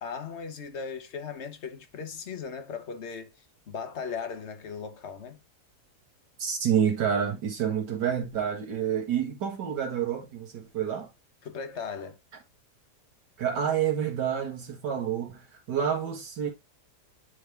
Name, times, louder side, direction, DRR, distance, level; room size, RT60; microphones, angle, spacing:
voice 1, 0.0-5.4 11.4-12.2, left 6 dB, 45° left, 1.2 m, -38 dB
voice 2, 6.4-11.1 13.4-16.5, right 8 dB, 85° right, 2.0 m, -28 dB
9.6 x 3.7 x 3.3 m
omnidirectional pair, 1.8 m